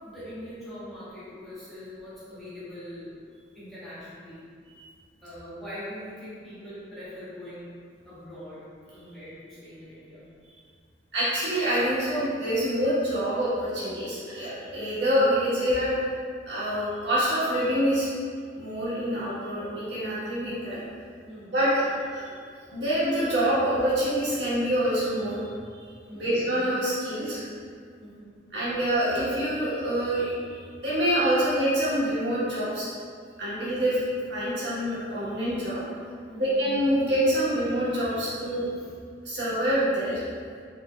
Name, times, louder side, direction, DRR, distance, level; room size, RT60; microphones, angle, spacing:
voice 1, 0.0-3.1 3.5-4.5 5.2-7.7 8.0-8.7 8.9-10.2 21.3-21.7 26.0-26.4 28.0-28.3 35.9-36.6 38.8-38.9, equal, ahead, -14 dB, 1.3 m, -42 dB
voice 2, 11.1-16.0 16.5-18.1 18.6-20.8 21.5-21.7 22.1-22.3 22.7-25.4 26.1-27.4 28.5-30.3 30.8-32.9 33.4-34.0 34.3-35.8 36.4-38.6 39.2-40.2, equal, 70° right, -10 dB, 1.4 m, -26 dB
4.4 x 3.4 x 2.4 m, 2.1 s
head